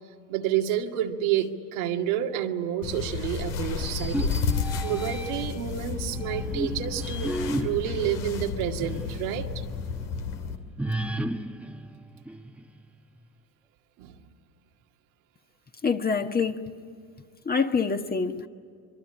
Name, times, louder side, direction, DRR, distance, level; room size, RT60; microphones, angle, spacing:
voice 1, 0.3-4.3 4.8-7.3 7.6-9.6 14.0-14.1, right 10 dB, 85° right, 2.3 m, -29 dB
sound 1, 2.8-10.6, left 5 dB, 85° left, 2.7 m, -32 dB
sound 2, 3.8-5.6 6.2-9.2 9.6-9.7 10.8-12.8, right 1 dB, 5° right, 1.1 m, -33 dB
voice 2, 15.8-16.6 17.4-18.5, left 5 dB, 20° left, 1.5 m, -25 dB
25.0 x 23.5 x 10.0 m
supercardioid pair, 95°, 42 cm